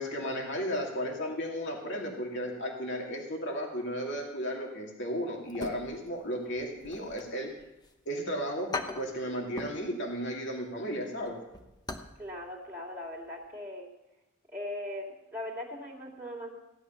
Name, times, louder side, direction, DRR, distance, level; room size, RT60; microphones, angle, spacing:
voice 1, 0.0-7.5 8.1-11.4, equal, 60° left, 0 dB, 2.5 m, -34 dB
sound 1, 5.5-6.3 6.6-7.9 8.3-8.4 8.7-9.8 10.1-10.4 10.8-12.2 12.4-12.5 13.0-13.3 13.5-13.6, left 3 dB, 20° left, 0.9 m, -40 dB
voice 2, 12.2-13.9 14.5-16.5, left 1 dB, 10° right, -5 dB, 2.6 m, -39 dB
16.5 x 11.0 x 5.8 m, 0.97 s
head